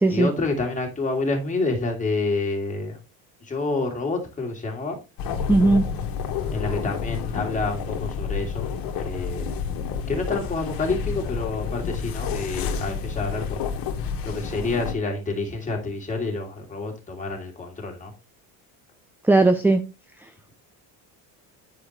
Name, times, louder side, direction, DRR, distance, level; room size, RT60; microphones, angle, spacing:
voice 1, 0.1-3.0 3.4-5.0 6.5-8.7 9.0-9.5 10.1-13.7 14.2-18.1, left 3 dB, 20° left, 2.8 m, -28 dB
sound 1, 5.2-14.9, left 6 dB, 55° left, 1.4 m, -29 dB
voice 2, 5.5-5.8 19.3-19.8, right 2 dB, 5° right, 0.5 m, -17 dB
9.8 x 5.0 x 3.2 m
cardioid pair, 110°, 41 cm